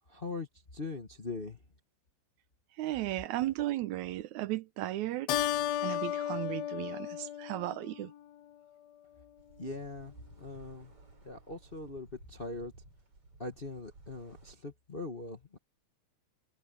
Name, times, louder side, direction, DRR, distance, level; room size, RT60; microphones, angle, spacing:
voice 1, 0.1-1.6 9.6-10.9 11.2-12.7 13.4-15.6, left 3 dB, 30° left, 1.1 m, -41 dB
voice 2, 2.8-5.5 5.8-8.1, right 15 dB, 85° right, 2.2 m, -35 dB
Keyboard (musical), 5.3-8.2, left 11 dB, 70° left, 1.8 m, -34 dB
sound 1, 9.4-14.5, right 2 dB, 50° right, 6.8 m, -57 dB
omnidirectional pair, 3.3 m